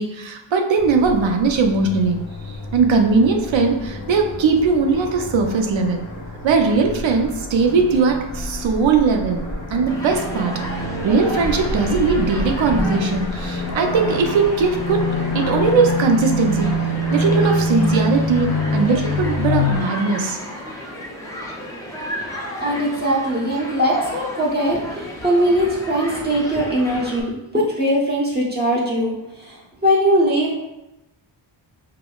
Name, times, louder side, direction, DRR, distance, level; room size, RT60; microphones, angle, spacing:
voice 1, 0.0-2.2 2.7-6.0 6.4-9.4 9.7-10.5 11.0-15.1 15.3-16.7 17.1-20.4, right 4 dB, 70° right, 4 dB, 0.6 m, -19 dB
sound 1, 0.8-19.8, left 2 dB, 40° left, 0.7 m, -26 dB
Human group actions, 9.9-27.2, equal, 5° left, 0.4 m, -33 dB
voice 2, 22.6-30.5, equal, 20° right, -4 dB, 0.8 m, -20 dB
4.7 x 2.0 x 2.3 m, 0.94 s
wide cardioid pair, 125°, 48 cm